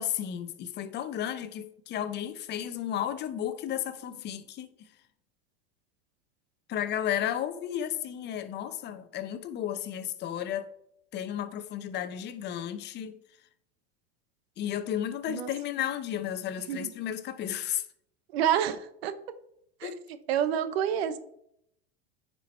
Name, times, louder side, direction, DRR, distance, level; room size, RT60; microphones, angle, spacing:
voice 1, 0.0-4.7 6.7-10.7 11.1-13.2 14.6-17.8 19.8-20.0, left 10 dB, 35° left, 0.7 m, -33 dB
voice 2, 18.3-19.1 19.8-19.9 20.3-21.2, right 9 dB, 85° right, 0.9 m, -28 dB
9.4 x 4.6 x 4.4 m
supercardioid pair, 125°, 30 cm